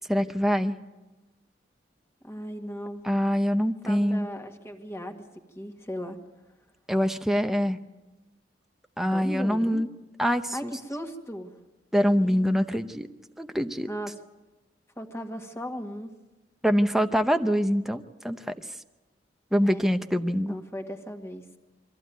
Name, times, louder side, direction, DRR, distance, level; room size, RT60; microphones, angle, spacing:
voice 1, 0.1-0.8 3.0-4.3 6.9-7.8 9.0-9.9 10.2-10.7 11.9-13.1 13.4-13.9 16.6-18.5 19.5-20.6, equal, ahead, 7 dB, 0.8 m, -24 dB
voice 2, 2.2-3.0 3.8-5.2 5.6-6.2 9.0-9.8 10.5-11.5 12.2-12.5 13.9-14.2 15.0-16.1 19.6-19.8 20.4-21.5, equal, 15° left, 4 dB, 1.9 m, -37 dB
23.5 x 15.0 x 9.3 m, 1.1 s
head